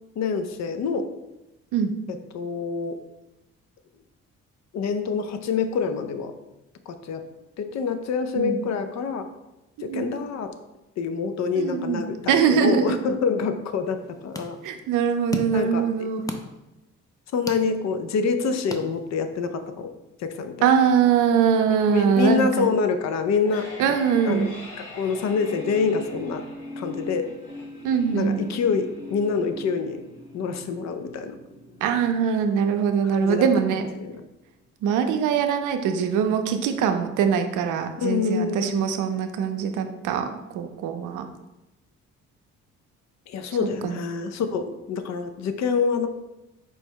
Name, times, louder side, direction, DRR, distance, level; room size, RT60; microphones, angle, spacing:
voice 1, 0.2-1.1 2.1-3.0 4.7-6.3 6.9-7.2 7.6-9.3 9.8-10.5 11.0-14.6 15.5-15.8 17.3-19.9 20.2-20.6 21.9-24.0 24.2-24.5 24.9-26.5 26.8-27.3 28.1-30.0 30.3-31.4 33.0-34.2 38.0-38.9 43.3-46.1, left 5 dB, 65° left, 8 dB, 0.5 m, -26 dB
voice 2, 9.8-10.1 11.6-12.0 12.3-13.0 14.6-16.3 20.6-22.7 23.8-24.5 27.8-28.4 31.8-33.8 34.8-40.3 40.5-41.3 43.8-43.9, right 7 dB, 85° right, 7 dB, 0.5 m, -22 dB
sound 1, 13.8-19.5, left 2 dB, 10° left, 0.4 m, -39 dB
sound 2, 23.2-34.2, left 1 dB, 40° left, 1.4 m, -41 dB
4.6 x 2.1 x 4.5 m, 0.95 s
cardioid pair, 90°, 30 cm